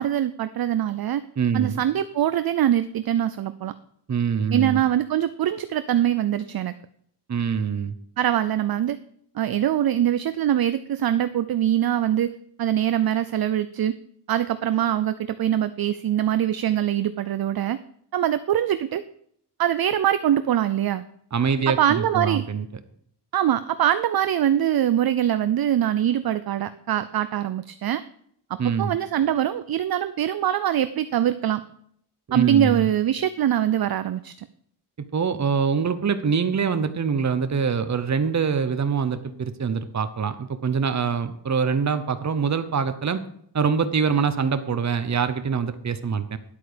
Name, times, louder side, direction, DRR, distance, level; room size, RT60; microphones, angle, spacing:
voice 1, 0.0-1.2 1.5-3.7 4.5-6.7 8.2-9.0 9.4-12.3 12.6-13.9 14.3-17.8 18.1-19.0 19.6-21.0 21.7-22.4 23.3-28.0 28.8-31.6 32.3-34.5, right 11 dB, 60° right, 13 dB, 0.5 m, -23 dB
voice 2, 1.4-1.8 4.1-4.8 7.3-7.9 21.3-22.7 28.6-29.0 32.3-32.9 35.1-43.2 43.5-46.4, right 6 dB, 40° right, 11 dB, 0.9 m, -24 dB
10.5 x 8.3 x 5.1 m, 0.67 s
wide cardioid pair, 155°, 42 cm